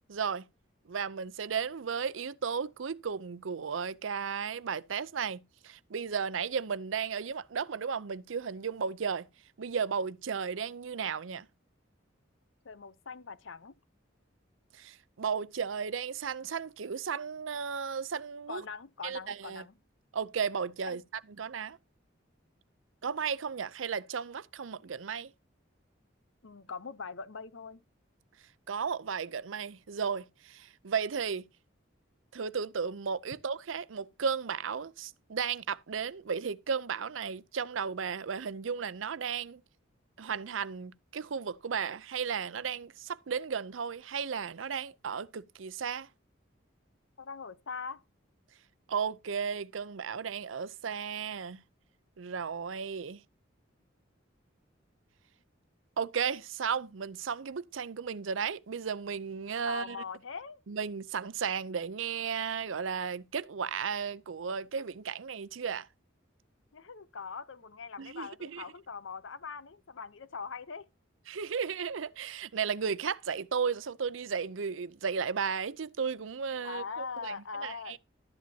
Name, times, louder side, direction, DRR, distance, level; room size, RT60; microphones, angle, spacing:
voice 1, 0.1-0.4 0.9-9.3 9.6-11.5 14.7-18.6 19.0-19.6 20.1-21.0 21.4-21.8 23.0-25.3 28.7-31.4 32.3-39.6 40.2-46.1 48.9-51.6 52.2-53.2 56.0-60.0 60.7-65.9 68.0-68.6 71.3-78.0, right 6 dB, 90° right, 0.6 m, -34 dB
voice 2, 12.6-13.7 18.5-19.7 20.9-21.0 26.4-27.8 47.2-48.0 59.7-60.6 66.7-70.9 76.6-78.0, left 5 dB, 80° left, 0.8 m, -42 dB
12.5 x 10.5 x 2.8 m
head